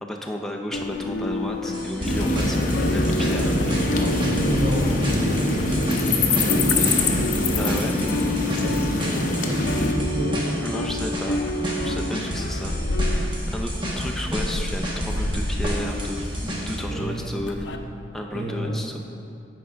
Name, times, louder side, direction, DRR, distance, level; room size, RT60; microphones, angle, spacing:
voice 1, 0.0-3.6 7.6-8.0 9.1-9.2 10.6-11.5 11.8-17.7 18.1-19.0, equal, 5° left, 0 dB, 0.5 m, -33 dB
sound 1, 0.7-6.1 6.3-17.8, left 2 dB, 90° left, 0.5 m, -30 dB
sound 2, 1.7-16.8, equal, 25° right, 1.0 m, -30 dB
sound 3, 2.0-9.9, left 2 dB, 45° left, 0.7 m, -23 dB
voice 2, 4.0-7.1 7.5-7.6 8.5-10.4 16.9-17.3 18.3-18.8, right 1 dB, 50° right, -1 dB, 1.0 m, -30 dB
8.6 x 4.6 x 5.1 m, 2.6 s
head